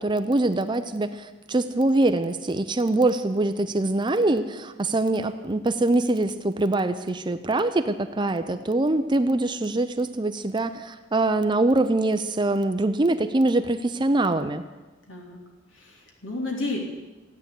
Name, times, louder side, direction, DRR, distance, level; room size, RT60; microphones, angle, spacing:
voice 1, 0.0-14.6, right 2 dB, 25° right, 9 dB, 0.6 m, -24 dB
voice 2, 15.1-15.4 15.7-16.8, left 2 dB, 85° left, 0 dB, 2.9 m, -32 dB
16.0 x 9.4 x 8.3 m, 1.2 s
head